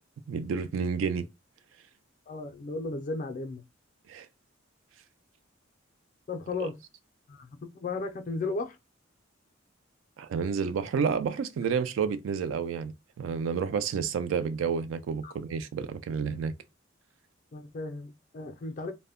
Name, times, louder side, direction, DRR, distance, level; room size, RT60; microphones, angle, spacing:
voice 1, 0.3-1.3 4.1-4.3 6.6-6.7 10.2-12.9 13.2-16.5, right 6 dB, 75° right, 0.3 m, -30 dB
voice 2, 2.3-3.6 6.3-6.7 7.3-8.8 15.2-15.3 17.5-18.9, left 3 dB, 40° left, 0.4 m, -35 dB
2.1 x 2.1 x 3.4 m
head